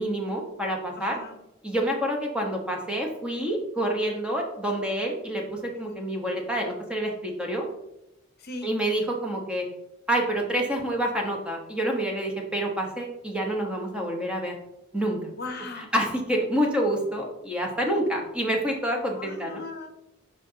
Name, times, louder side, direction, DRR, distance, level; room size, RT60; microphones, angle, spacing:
voice 1, 0.0-1.2 1.6-7.6 8.6-9.6 10.1-14.5 14.9-15.3 15.8-19.6, right 1 dB, 5° right, 0 dB, 1.0 m, -28 dB
voice 2, 1.0-1.4 8.4-8.7 15.3-15.9 19.2-19.9, left 3 dB, 50° left, 5 dB, 0.9 m, -38 dB
8.3 x 5.3 x 2.8 m, 0.86 s
head